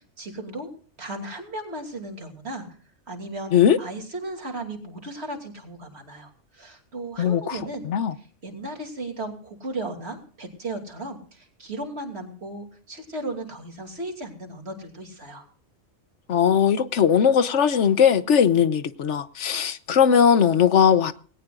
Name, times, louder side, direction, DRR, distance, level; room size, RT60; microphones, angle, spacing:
voice 1, 0.2-0.7 1.0-2.7 3.1-3.5 3.8-7.8 8.4-15.5, right 2 dB, 60° right, 3.1 m, -35 dB
voice 2, 7.2-7.6 7.8-8.1 16.3-21.1, left 8 dB, 75° left, 1.2 m, -19 dB
19.0 x 17.5 x 2.5 m
omnidirectional pair, 1.2 m